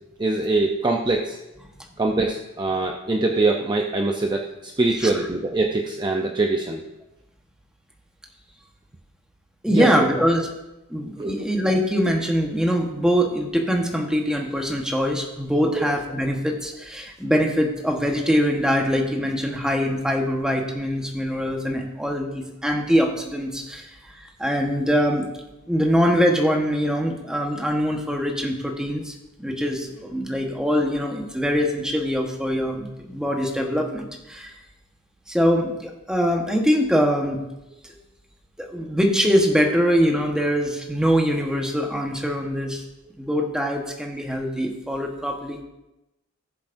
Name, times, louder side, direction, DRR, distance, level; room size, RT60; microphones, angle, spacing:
voice 1, 0.2-1.4 2.0-6.8 9.7-9.9 11.2-11.3 15.8-15.9, right 2 dB, 20° right, 1 dB, 0.6 m, -23 dB
voice 2, 9.6-10.5 10.9-25.2 25.7-34.5 35.3-37.4 37.8-38.0 38.6-42.8 43.2-45.6, equal, 5° right, 1 dB, 1.2 m, -23 dB
18.5 x 7.3 x 2.6 m, 0.95 s
head